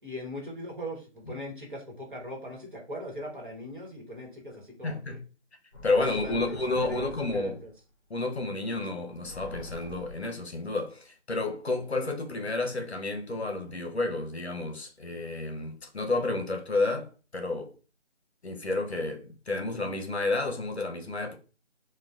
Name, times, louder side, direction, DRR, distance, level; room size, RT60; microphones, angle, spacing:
voice 1, 0.0-5.2 6.0-7.7, equal, 45° right, 1.2 m, -40 dB
voice 2, 4.8-5.2 5.8-7.5 8.1-17.7 18.4-21.3, left 2 dB, 60° left, 0.8 m, -31 dB
sound 1, 5.7-7.7 9.1-10.5, left 2 dB, 20° left, 1.5 m, -44 dB
3.9 x 2.3 x 2.3 m
figure-of-eight pair, 175°, 36 cm